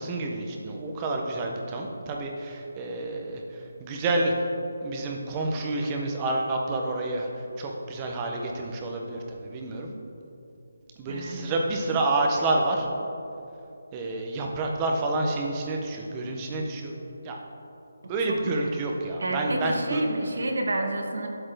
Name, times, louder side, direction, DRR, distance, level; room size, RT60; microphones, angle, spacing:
voice 1, 0.0-4.3 4.8-7.3 7.6-9.9 11.0-12.9 13.9-16.9 17.2-17.4 18.1-20.0, right 2 dB, 10° right, 1 dB, 0.4 m, -29 dB
voice 2, 11.1-11.4 18.2-18.7 19.2-21.3, right 1 dB, 60° right, 3 dB, 1.0 m, -29 dB
12.0 x 4.0 x 3.2 m, 2.8 s
hypercardioid pair, 180°, 0 cm